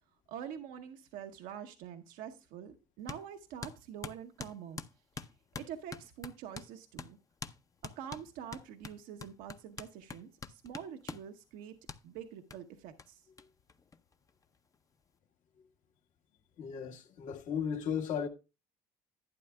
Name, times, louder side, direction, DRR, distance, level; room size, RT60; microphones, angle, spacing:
voice 1, 0.3-4.8 5.2-5.3 5.6-7.2 7.8-11.8 12.0-13.3, right 9 dB, 70° right, 0.8 m, -46 dB
sound 1, 3.1-3.2 3.6-6.7 7.0-7.1 7.4-7.6 7.8-11.3 11.9-12.0 12.5-12.6 13.0-13.1 13.4-13.5 13.7-14.4, left 5 dB, 25° left, 0.7 m, -44 dB
voice 2, 16.6-18.3, left 7 dB, 60° left, 1.5 m, -35 dB
11.5 x 9.2 x 2.2 m
hypercardioid pair, 65°, 15 cm